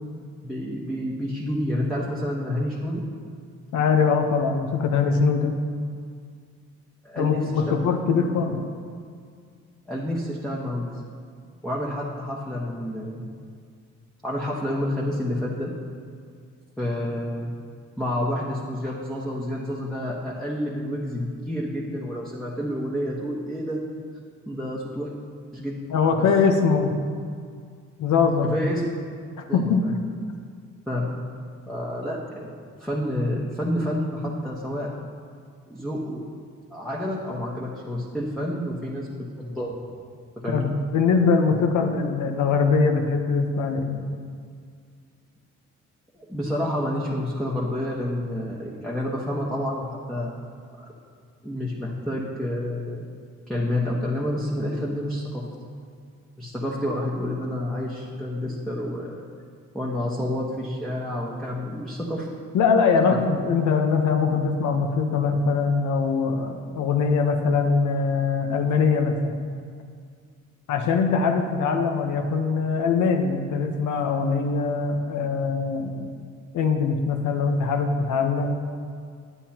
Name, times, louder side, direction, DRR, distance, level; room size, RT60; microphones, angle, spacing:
voice 1, 0.4-3.0 7.0-7.8 9.9-10.9 11.6-13.2 14.2-15.7 16.8-17.5 18.0-23.8 24.5-25.1 25.5-25.8 26.2-26.3 28.5-28.9 29.5-30.0 30.9-31.1 31.7-34.9 35.7-36.2 36.7-39.1 39.4-39.8 40.4-40.8 46.1-50.4 50.8-50.9 51.4-53.0 53.5-55.4 56.4-59.3 59.7-62.3, left 1 dB, ahead, -5 dB, 1.1 m, -29 dB
voice 2, 3.7-5.6 7.2-8.6 25.9-26.9 28.0-28.6 29.5-29.9 40.5-44.0 62.5-69.4 70.7-76.1 76.5-78.5, left 5 dB, 75° left, 4 dB, 0.9 m, -22 dB
9.8 x 9.1 x 2.9 m, 2.1 s
cardioid pair, 90°, 30 cm